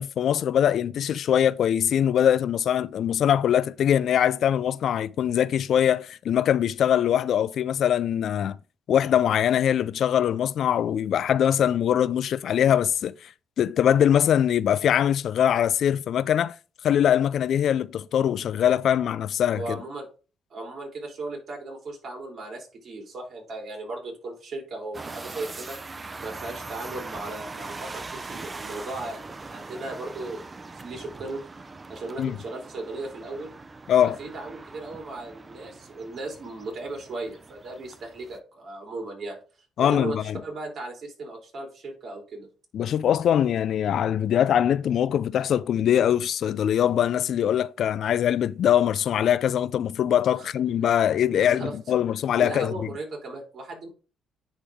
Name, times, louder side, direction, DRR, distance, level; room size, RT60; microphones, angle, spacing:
voice 1, 0.0-8.6 8.9-13.1 13.6-16.6 16.8-19.6 32.2-32.4 33.9-34.2 39.8-40.4 42.7-52.7, left 9 dB, 65° left, 0.3 m, -22 dB
voice 2, 19.5-20.1 20.5-25.7 26.2-31.4 31.9-33.5 34.0-39.4 39.8-42.5 50.3-50.5 51.3-51.7 52.4-53.9, right 2 dB, 55° right, 3.3 m, -36 dB
sound 1, 24.9-38.4, right 3 dB, 25° right, 0.5 m, -41 dB
9.9 x 3.6 x 3.5 m
cardioid pair, 90°, 0 cm